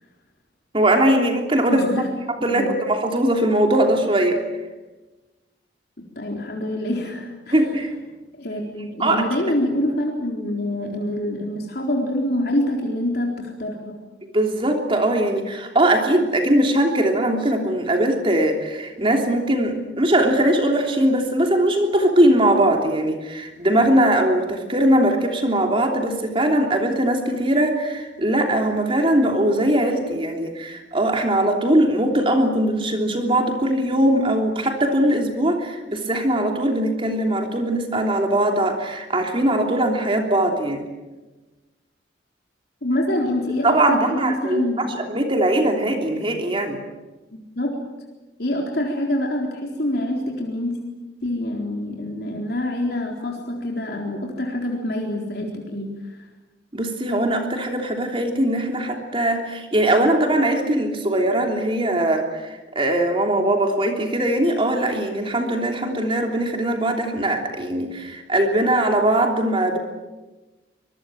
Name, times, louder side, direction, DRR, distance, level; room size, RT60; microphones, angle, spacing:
voice 1, 0.7-1.8 2.3-4.4 7.5-7.9 9.0-9.2 14.3-40.8 43.6-46.8 56.7-69.8, right 1 dB, 30° right, 3 dB, 3.2 m, -20 dB
voice 2, 1.7-2.1 2.5-2.7 6.2-7.6 8.4-14.0 42.8-44.9 47.3-47.8 48.4-50.8 51.2-55.9, left 1 dB, 60° left, 0 dB, 4.0 m, -26 dB
25.5 x 22.0 x 7.8 m, 1.1 s
head